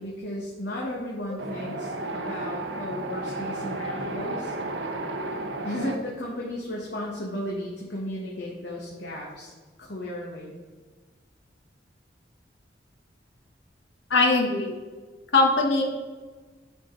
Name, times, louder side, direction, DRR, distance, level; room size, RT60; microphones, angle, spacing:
voice 1, 0.0-4.5 5.6-9.5 9.8-10.6, left 1 dB, 65° left, -4 dB, 1.4 m, -34 dB
Wind, 1.4-6.0, right 2 dB, 80° right, 0.9 m, -33 dB
voice 2, 14.1-14.7 15.3-15.8, left 3 dB, 85° left, 1 dB, 1.3 m, -20 dB
10.0 x 5.2 x 3.9 m, 1.4 s
head